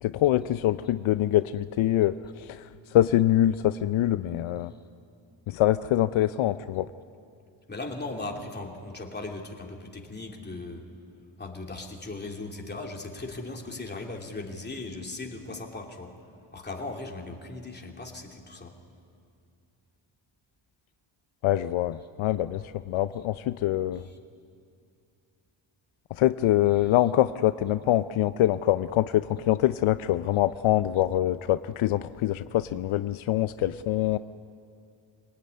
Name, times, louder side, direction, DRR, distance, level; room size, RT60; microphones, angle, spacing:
voice 1, 0.0-4.7 5.5-6.9 21.4-24.0 26.1-34.2, left 13 dB, 75° left, 12 dB, 0.6 m, -24 dB
voice 2, 7.7-10.8 11.4-16.2 16.5-18.8, left 2 dB, 20° left, 1 dB, 2.9 m, -38 dB
25.0 x 19.0 x 9.6 m, 2.4 s
cardioid pair, 105°, 48 cm